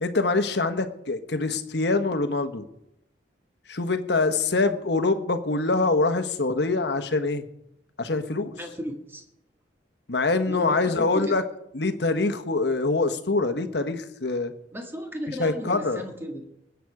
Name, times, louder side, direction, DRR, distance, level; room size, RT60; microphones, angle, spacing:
voice 1, 0.0-2.6 3.7-7.4 8.0-8.5 10.1-11.4 11.7-14.5 15.4-16.0, left 3 dB, 65° left, 9 dB, 1.1 m, -24 dB
voice 2, 8.6-9.2 10.5-11.3 14.7-16.4, equal, 10° right, 3 dB, 1.6 m, -35 dB
20.0 x 8.1 x 4.8 m, 0.80 s
head